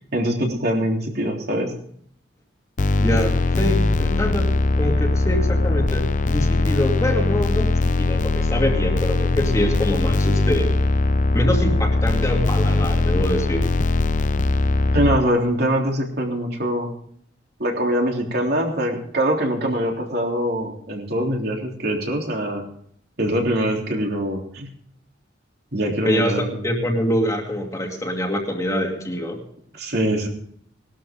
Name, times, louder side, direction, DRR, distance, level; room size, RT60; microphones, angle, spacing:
voice 1, 0.1-1.7 14.9-16.9 17.6-22.6 23.2-24.7 25.7-26.5 29.8-30.3, right 1 dB, 55° right, 0 dB, 3.4 m, -23 dB
sound 1, 2.8-15.2, left 2 dB, 45° left, 0.6 m, -20 dB
voice 2, 3.0-10.8 11.3-13.6 26.0-29.4, equal, 15° left, 1 dB, 2.3 m, -25 dB
19.5 x 12.5 x 3.8 m, 0.64 s
head